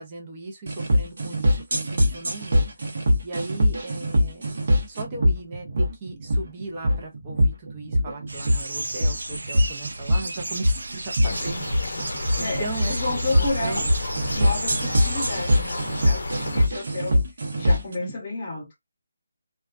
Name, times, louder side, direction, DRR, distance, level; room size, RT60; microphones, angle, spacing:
voice 1, 0.0-4.5 4.9-11.8 12.1-12.9 13.3-13.8 14.1-14.3 18.0-18.1, right 3 dB, 25° right, 0.6 m, -37 dB
sound 1, 0.7-17.9, equal, 55° right, 0.9 m, -23 dB
sound 2, 8.3-17.1, right 2 dB, 80° right, 0.6 m, -34 dB
sound 3, 11.2-16.7, left 2 dB, 70° left, 0.5 m, -31 dB
voice 2, 12.4-13.9 14.3-18.8, left 3 dB, 20° left, 1.0 m, -32 dB
2.3 x 2.3 x 2.4 m
figure-of-eight pair, 165°, 0 cm